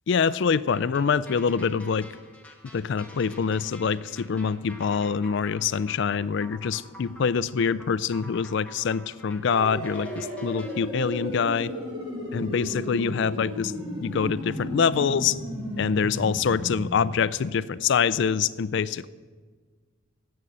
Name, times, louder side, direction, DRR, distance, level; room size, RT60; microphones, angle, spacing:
voice 1, 0.1-2.1 2.7-11.7 12.3-13.7 14.0-15.4 15.8-19.1, left 6 dB, 55° left, 18 dB, 0.3 m, -25 dB
sound 1, 0.7-10.8, left 1 dB, 5° left, 1.1 m, -48 dB
sound 2, 9.5-16.9, equal, 20° right, 2.2 m, -34 dB
10.5 x 7.7 x 8.6 m, 1.5 s
head